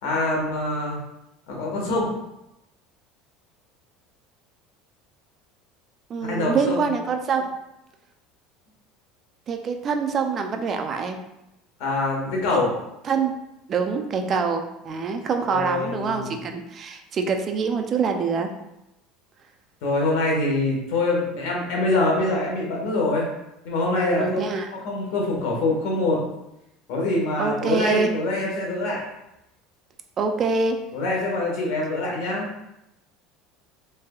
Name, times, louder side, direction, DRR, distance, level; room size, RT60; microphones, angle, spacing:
voice 1, 0.0-1.0 1.5-2.1 6.2-6.9 11.8-12.7 15.5-16.4 19.8-23.3 23.6-26.2 26.9-29.0 30.9-32.5, left 2 dB, 75° left, -2 dB, 1.1 m, -24 dB
voice 2, 6.1-7.5 9.5-11.2 13.1-13.3 13.7-18.5 24.2-24.7 27.4-28.1 30.2-30.8, right 5 dB, 30° right, 5 dB, 0.3 m, -25 dB
3.3 x 3.3 x 2.2 m, 0.88 s
cardioid pair, 140°, 0 cm